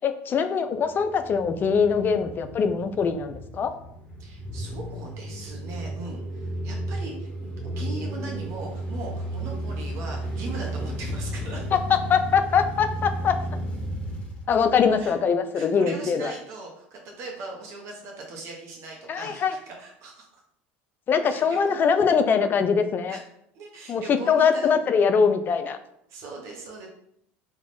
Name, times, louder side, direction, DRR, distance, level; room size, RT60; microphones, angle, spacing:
voice 1, 0.0-3.7 11.7-11.8 12.1-13.3 14.5-16.3 19.1-19.6 21.1-23.2 23.9-25.8, left 6 dB, 35° left, 8 dB, 0.3 m, -22 dB
sound 1, 0.9-15.2, right 1 dB, 20° left, 0.8 m, -33 dB
voice 2, 4.2-7.5 7.8-11.6 15.0-15.1 15.5-20.4 21.2-21.8 23.1-23.2 23.5-24.7 26.1-26.9, right 2 dB, 55° right, -1 dB, 0.7 m, -39 dB
2.5 x 2.2 x 3.4 m, 0.73 s
hypercardioid pair, 85°, 6 cm